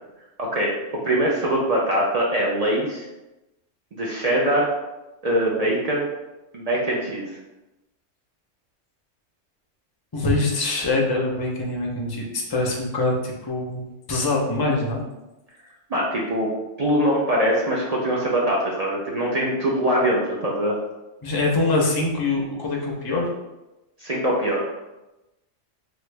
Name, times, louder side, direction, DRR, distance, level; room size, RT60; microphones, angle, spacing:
voice 1, 0.4-3.1 3.9-4.7 5.2-6.1 6.5-7.3 15.9-16.5 16.8-20.8 24.0-24.6, right 1 dB, 55° right, -3 dB, 0.4 m, -22 dB
voice 2, 10.1-13.8 14.1-15.0 21.2-23.3, left 2 dB, 35° left, -1 dB, 0.4 m, -24 dB
3.1 x 2.5 x 3.2 m, 1.0 s
omnidirectional pair, 1.3 m